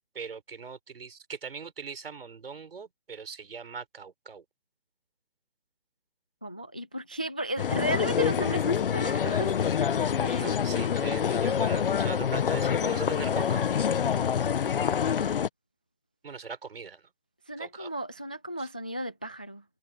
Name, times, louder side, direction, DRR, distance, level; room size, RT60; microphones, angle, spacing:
voice 1, 0.1-4.4 10.3-14.2 15.0-15.2 16.2-17.0 17.6-17.9 18.6-18.7, right 5 dB, 75° right, 6.0 m, -41 dB
voice 2, 6.4-9.7 10.2-10.5 17.5-19.6, right 1 dB, 10° left, 0.3 m, -34 dB
sound 1, 7.6-15.5, left 8 dB, 65° left, 1.0 m, -26 dB
hypercardioid pair, 155°, 29 cm